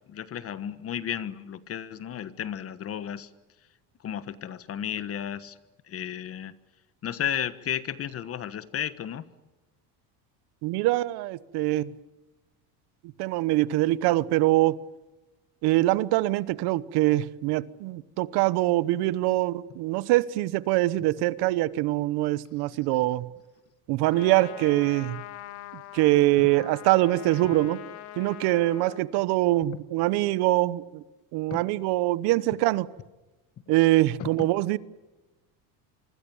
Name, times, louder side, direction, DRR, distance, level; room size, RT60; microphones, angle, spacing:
voice 1, 0.1-3.3 4.0-5.6 5.9-6.5 7.0-9.3 26.4-26.5 31.5-31.6 34.2-34.3, left 9 dB, 35° left, 1.3 m, -33 dB
voice 2, 10.6-11.9 13.2-14.8 15.6-23.3 23.9-25.2 25.9-27.8 28.2-31.0 31.3-32.9 33.7-34.8, right 17 dB, 70° right, 1.1 m, -24 dB
Trumpet, 24.1-29.1, left 14 dB, 65° left, 2.4 m, -43 dB
26.0 x 24.5 x 7.2 m
cardioid pair, 145°, 41 cm